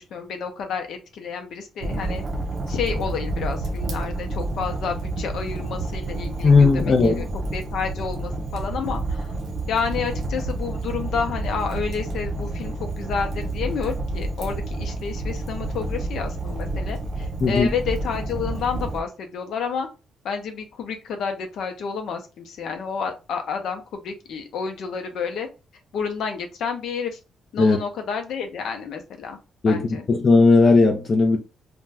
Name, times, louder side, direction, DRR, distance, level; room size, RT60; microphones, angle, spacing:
voice 1, 0.0-2.2 2.7-7.3 7.5-9.3 9.7-19.9 20.2-25.5 25.9-27.2 27.5-29.4 29.7-30.1, left 6 dB, 70° left, 0.6 m, -30 dB
Fire, 1.8-19.0, right 2 dB, 45° right, 0.6 m, -29 dB
voice 2, 6.4-7.2 17.4-17.7 27.6-27.8 29.6-29.8 30.1-31.4, left 3 dB, 40° left, 0.4 m, -16 dB
2.5 x 2.2 x 3.2 m
cardioid pair, 130°, 0 cm